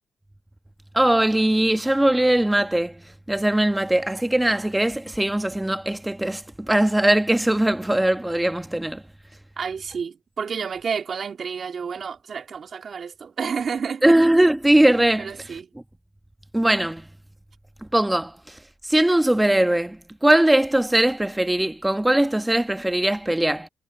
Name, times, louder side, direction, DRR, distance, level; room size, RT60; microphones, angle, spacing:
voice 1, 0.9-3.0 3.3-9.0 14.0-15.5 16.5-17.1 17.9-18.6 18.8-23.7, right 1 dB, 10° right, 1.5 m, -20 dB
voice 2, 9.6-14.2 15.2-15.7, right 6 dB, 55° right, 2.7 m, -30 dB
supercardioid pair, 50°, 0 cm